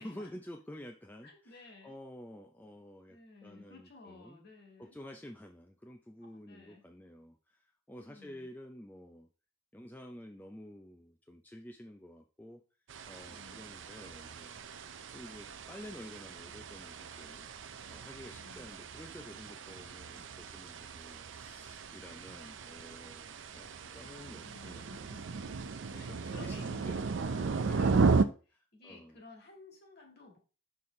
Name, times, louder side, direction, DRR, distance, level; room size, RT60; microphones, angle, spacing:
voice 1, 0.0-4.4 4.8-9.3 9.7-12.6 13.0-14.6 15.1-17.5 17.9-23.7 23.9-24.9 25.4-27.2 27.5-28.0 28.5-29.2, left 1 dB, 10° left, 3 dB, 0.4 m, -50 dB
voice 2, 1.2-2.0 3.1-5.0 6.2-6.8 7.9-8.5 13.3-13.7 18.4-18.7 19.8-20.3 22.2-22.5 23.8-25.2 26.0-30.4, left 3 dB, 50° left, 1 dB, 1.8 m, -55 dB
sound 1, 12.9-28.3, right 4 dB, 60° right, 0.5 m, -35 dB
6.1 x 5.6 x 3.2 m, 0.35 s
head